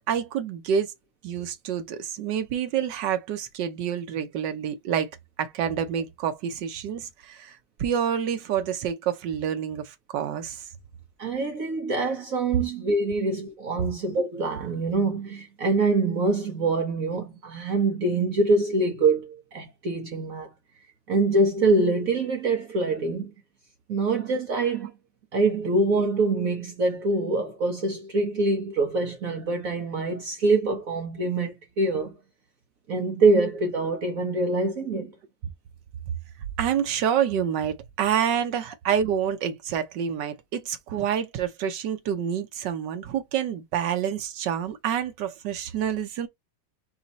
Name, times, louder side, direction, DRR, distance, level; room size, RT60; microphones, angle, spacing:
voice 1, 0.1-0.9 1.2-5.1 5.4-10.7 36.6-46.3, right 8 dB, 75° right, 1.5 m, -28 dB
voice 2, 11.2-20.5 21.1-23.3 23.9-24.9 25.3-32.1 32.9-35.1, right 3 dB, 55° right, 1.3 m, -24 dB
4.3 x 3.0 x 4.1 m
omnidirectional pair, 2.0 m